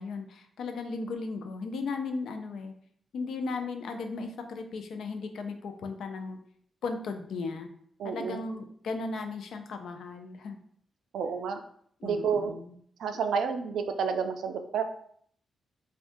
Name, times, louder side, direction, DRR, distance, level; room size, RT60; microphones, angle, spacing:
voice 1, 0.0-2.7 3.1-6.4 6.8-7.7 8.0-10.6 12.0-12.7, left 4 dB, 80° left, 6 dB, 0.4 m, -36 dB
voice 2, 8.0-8.4 11.1-11.6 12.0-12.5 13.0-14.8, right 6 dB, 90° right, 7 dB, 0.3 m, -30 dB
2.5 x 2.3 x 3.6 m, 0.63 s
cardioid pair, 95°, 0 cm